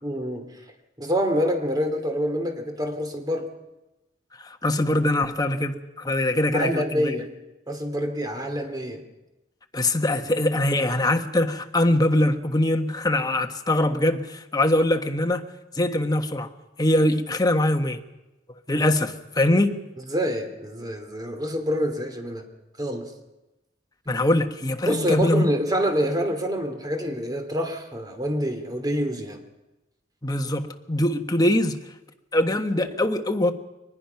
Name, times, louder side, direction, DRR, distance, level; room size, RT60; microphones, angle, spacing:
voice 1, 0.0-0.5 1.0-3.5 6.5-7.3 7.7-9.0 20.1-22.5 22.8-23.1 24.9-29.4, equal, 20° right, 6 dB, 2.8 m, -26 dB
voice 2, 4.4-7.1 9.7-15.4 15.7-16.5 16.8-18.0 18.7-19.8 24.1-25.5 30.2-31.8 32.3-33.5, left 1 dB, 20° left, 6 dB, 1.3 m, -22 dB
23.5 x 20.0 x 5.8 m, 1.0 s
head